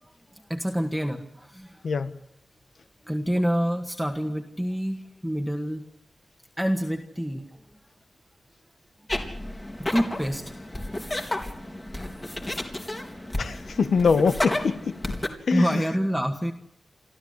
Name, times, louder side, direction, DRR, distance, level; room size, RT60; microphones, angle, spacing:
voice 1, 0.0-2.0 3.0-5.8 6.6-7.8 9.8-11.2 15.5-16.5, equal, ahead, 4 dB, 1.8 m, -28 dB
sound 1, 9.1-15.3, left 1 dB, 25° left, 3.6 m, -32 dB
voice 2, 13.4-14.9 15.5-15.7, left 5 dB, 75° left, 10 dB, 1.5 m, -23 dB
29.0 x 13.0 x 8.3 m, 0.74 s
cardioid pair, 65°, 0 cm